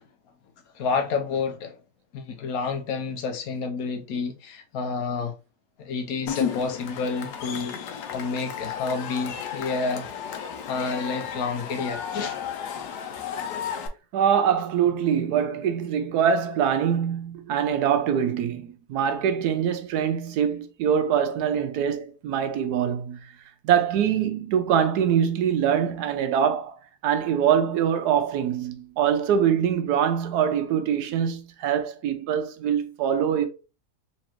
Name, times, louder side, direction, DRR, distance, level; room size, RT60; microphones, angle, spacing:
voice 1, 0.7-1.8 2.1-5.3 5.8-10.1 10.7-12.4, left 4 dB, 70° left, 1.1 m, -29 dB
Cheering / Crowd, 6.3-13.9, left 8 dB, 90° left, 1.2 m, -33 dB
voice 2, 14.1-23.3 23.6-33.5, right 8 dB, 85° right, 1.2 m, -24 dB
4.2 x 2.9 x 2.9 m
omnidirectional pair, 1.7 m